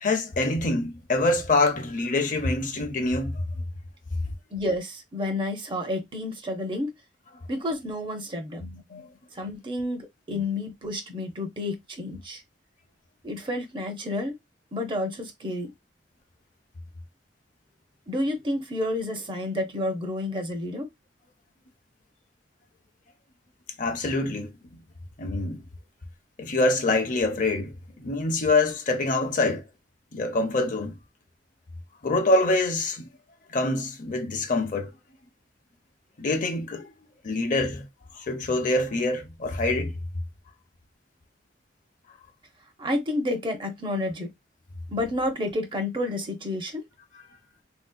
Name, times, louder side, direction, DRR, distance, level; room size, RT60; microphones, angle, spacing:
voice 1, 0.0-3.4 8.6-9.1 10.3-10.4 23.8-24.5 25.2-25.6 26.4-29.6 30.1-31.0 32.0-33.1 33.5-34.9 36.2-36.9 37.2-37.9 38.2-39.9, left 2 dB, 45° left, 0.6 m, -25 dB
voice 2, 4.5-6.9 7.5-8.6 9.4-12.4 13.2-14.3 14.7-15.7 18.1-20.9 42.8-44.3 44.9-46.8, left 1 dB, 30° right, 0.7 m, -30 dB
3.4 x 2.7 x 2.2 m
head